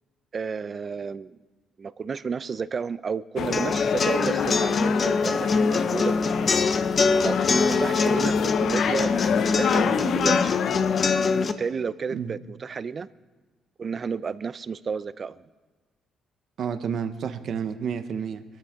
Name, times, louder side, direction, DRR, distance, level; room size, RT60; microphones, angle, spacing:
voice 1, 0.3-1.4 1.8-6.1 7.2-10.6 11.6-13.1 13.8-15.4, right 5 dB, 40° right, 17 dB, 0.5 m, -31 dB
sound 1, 3.4-11.4, left 8 dB, 70° left, 0.6 m, -27 dB
sound 2, 3.5-11.5, left 4 dB, 40° left, 0.8 m, -24 dB
voice 2, 16.6-18.4, right 7 dB, 65° right, 9 dB, 1.0 m, -30 dB
22.5 x 13.5 x 3.7 m, 1.3 s
cardioid pair, 90°, 0 cm